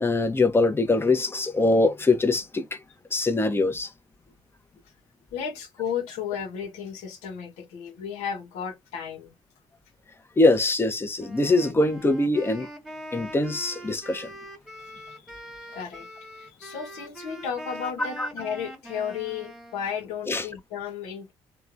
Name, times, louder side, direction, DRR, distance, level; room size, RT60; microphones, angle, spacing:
voice 1, 0.0-2.8 3.1-3.9 10.4-12.7 13.1-14.3 18.2-18.3 20.3-20.5, left 2 dB, 20° left, 0.8 m, -23 dB
voice 2, 5.3-9.4 14.9-15.2 15.7-21.3, left 7 dB, 90° left, 0.9 m, -34 dB
Wind instrument woodwind instrument, 11.2-20.0, right 1 dB, ahead, 1.4 m, -43 dB
2.9 x 2.2 x 2.5 m
supercardioid pair, 70°, 11 cm